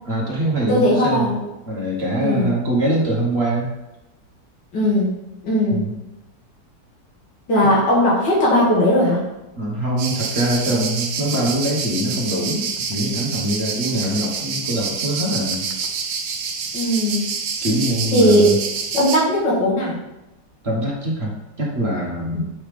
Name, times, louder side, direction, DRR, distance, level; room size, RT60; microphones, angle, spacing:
voice 1, 0.1-1.3 1.7-3.7 5.7-5.9 7.6-7.7 9.6-15.6 17.6-18.6 20.6-21.3 21.6-22.4, right 1 dB, 40° right, -3 dB, 1.5 m, -23 dB
voice 2, 0.7-1.4 2.2-2.5 4.7-5.1 5.4-5.8 7.5-9.2 16.7-17.2 18.1-18.5 18.9-20.0 22.3-22.4, equal, 85° left, -6 dB, 2.9 m, -18 dB
sound 1, 10.0-19.2, right 5 dB, 90° right, 1.5 m, -27 dB
7.6 x 5.6 x 3.4 m, 0.94 s
omnidirectional pair, 1.9 m